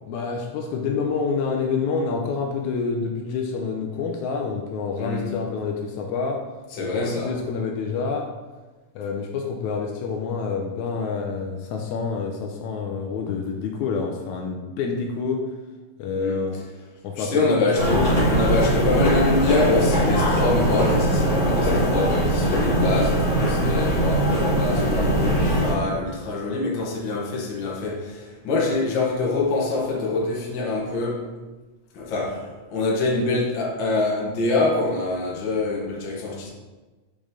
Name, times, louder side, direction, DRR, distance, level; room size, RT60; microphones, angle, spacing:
voice 1, 0.1-6.5 6.8-8.3 9.0-15.5 16.0-16.6 17.0-18.1, left 5 dB, 80° left, 2.0 m, -27 dB
voice 2, 6.7-7.3 16.2-16.4 17.2-31.2 31.9-36.5, left 2 dB, 50° left, 1.6 m, -25 dB
sound 1, 17.8-25.7, equal, 25° left, 2.0 m, -20 dB
6.6 x 5.2 x 3.6 m
omnidirectional pair, 3.5 m